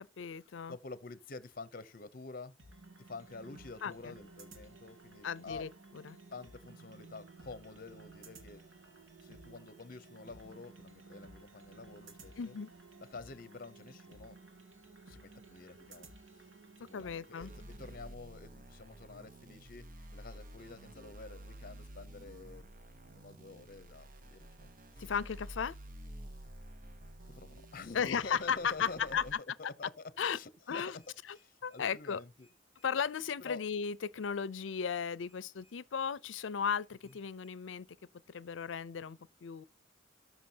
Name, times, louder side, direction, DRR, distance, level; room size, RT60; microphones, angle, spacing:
voice 1, 0.0-0.8 3.8-3.9 5.2-5.7 6.0-6.2 12.4-12.7 16.9-17.5 25.0-25.7 27.9-29.2 30.2-30.4 30.7-31.0 31.3-31.4 31.6-32.2 32.8-37.9 38.3-39.6, left 7 dB, 85° left, 0.5 m, -35 dB
voice 2, 0.7-2.5 3.0-5.7 6.3-8.6 9.2-12.5 13.1-14.4 15.1-16.1 16.8-22.7 23.0-25.1 27.3-31.0 31.3-32.5 33.4-33.6 37.0-37.1, left 3 dB, 50° left, 0.7 m, -48 dB
sound 1, 2.6-18.0, right 3 dB, 85° right, 2.2 m, -55 dB
sound 2, 17.4-29.3, right 1 dB, 45° right, 0.8 m, -51 dB
sound 3, 30.9-37.5, left 1 dB, ahead, 4.2 m, -72 dB
13.0 x 6.0 x 2.8 m
head